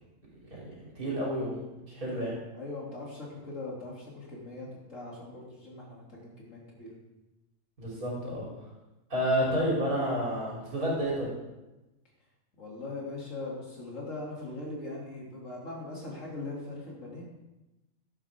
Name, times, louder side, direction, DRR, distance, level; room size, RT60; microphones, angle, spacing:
voice 1, 0.4-2.3 7.8-8.5 9.1-11.3, equal, 75° right, -6 dB, 4.2 m, -30 dB
voice 2, 2.5-6.9 12.5-17.2, left 2 dB, 60° left, -4 dB, 3.3 m, -40 dB
12.0 x 10.5 x 3.6 m, 1.0 s
omnidirectional pair, 1.5 m